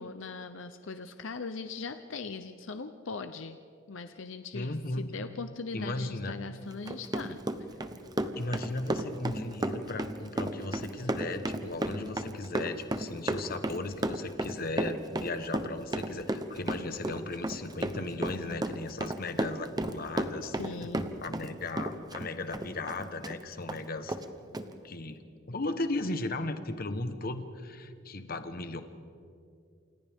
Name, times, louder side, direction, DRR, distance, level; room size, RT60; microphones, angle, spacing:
voice 1, 0.0-3.6 3.9-7.4 20.5-21.2, left 4 dB, 80° left, 9 dB, 0.7 m, -40 dB
voice 2, 4.5-5.2 5.7-6.4 8.4-20.5 21.2-24.1 24.8-28.8, left 2 dB, 50° left, 9 dB, 1.2 m, -36 dB
Run, 6.7-21.5 21.8-23.4 23.7-23.8 24.1-24.2 24.5-24.7, right 1 dB, 20° right, 0.9 m, -33 dB
28.5 x 27.0 x 3.7 m, 2.4 s
head